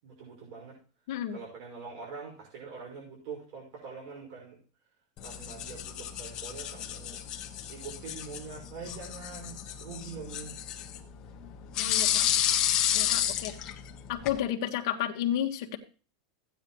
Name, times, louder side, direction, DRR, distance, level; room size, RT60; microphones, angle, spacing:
voice 1, 0.0-0.8 1.3-4.6 5.2-7.2 7.7-10.5, right 5 dB, 50° right, -2 dB, 5.7 m, -44 dB
voice 2, 1.1-1.4 11.8-12.3 12.9-13.5 14.1-15.8, left 11 dB, 60° left, 3 dB, 1.5 m, -31 dB
sound 1, 5.2-14.4, left 11 dB, 30° left, 1.2 m, -32 dB
15.0 x 9.2 x 3.1 m, 0.36 s
supercardioid pair, 165°, 2 cm